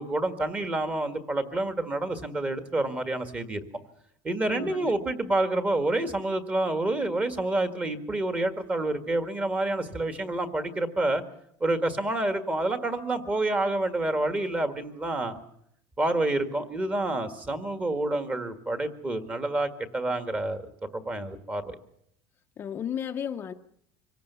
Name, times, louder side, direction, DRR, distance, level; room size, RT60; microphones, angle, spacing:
voice 1, 0.0-3.6 4.2-11.2 11.6-15.4 16.0-21.8, right 2 dB, 15° right, 1.7 m, -28 dB
voice 2, 4.5-4.9 22.6-23.5, left 8 dB, 25° left, 0.8 m, -33 dB
25.5 x 17.0 x 6.9 m
cardioid pair, 165°, 8 cm